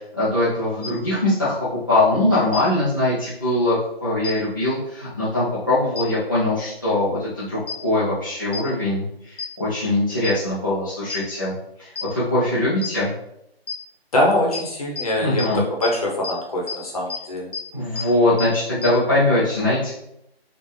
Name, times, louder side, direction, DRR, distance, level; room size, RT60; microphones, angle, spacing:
voice 1, 0.1-1.5 1.9-11.5 11.8-13.1 15.2-15.6 17.7-19.9, left 1 dB, 20° left, -11 dB, 0.5 m, -22 dB
sound 1, 0.8-0.9 2.5-2.6 4.2-4.3 6.0-6.1 7.7-7.8 8.5-8.6 9.4-9.5 10.2-10.3 11.1-11.2 12.0-12.1 12.8-12.9 13.7-13.8 14.5-14.6 15.0-15.1 15.4-15.5 15.8-15.9 16.2-16.3 16.7-16.8 17.1-17.2 17.5-17.6 18.0-18.1 18.4-18.5 18.8-18.9, left 5 dB, 60° left, 0.9 m, -28 dB
voice 2, 14.1-17.5, left 1 dB, 35° left, -2 dB, 1.0 m, -23 dB
4.3 x 2.4 x 3.2 m, 0.80 s
figure-of-eight pair, 160°, 31 cm